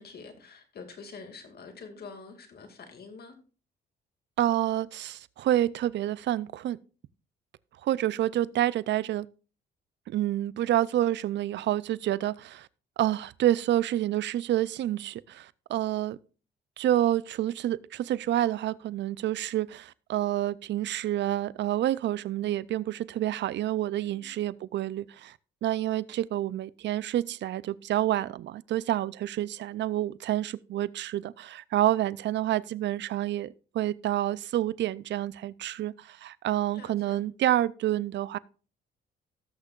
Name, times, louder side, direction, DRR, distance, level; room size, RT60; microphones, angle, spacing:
voice 1, 0.0-3.3 24.0-24.3 36.7-37.2, left 4 dB, 55° left, 2.3 m, -46 dB
voice 2, 4.4-6.8 7.8-9.3 10.1-12.7 13.0-16.2 16.8-25.4 25.6-38.4, right 13 dB, 65° right, 0.5 m, -28 dB
18.5 x 6.6 x 2.4 m
cardioid pair, 90°, 20 cm